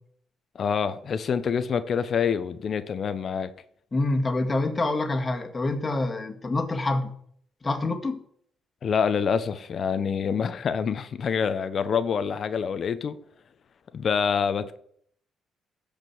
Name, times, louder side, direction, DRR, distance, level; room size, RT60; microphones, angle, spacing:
voice 1, 0.5-3.5 8.8-13.2 13.9-14.8, left 6 dB, 55° left, 0.9 m, -26 dB
voice 2, 3.9-7.1 7.6-8.2, left 2 dB, 30° left, 2.0 m, -26 dB
14.0 x 5.2 x 7.7 m
supercardioid pair, 75°, 0 cm